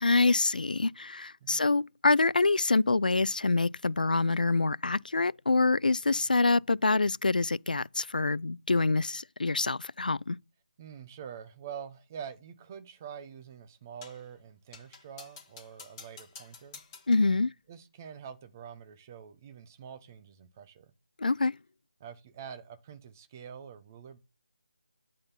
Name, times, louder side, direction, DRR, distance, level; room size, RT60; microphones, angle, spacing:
voice 1, 0.0-10.4 17.1-17.5 21.2-21.5, left 3 dB, 80° left, 0.4 m, -26 dB
voice 2, 10.8-16.8 17.3-20.9 22.0-24.2, right 7 dB, 20° right, 0.8 m, -46 dB
sound 1, 14.0-14.3 14.7-17.3, left 5 dB, 20° left, 1.6 m, -50 dB
8.8 x 3.7 x 4.3 m
figure-of-eight pair, 165°, 5 cm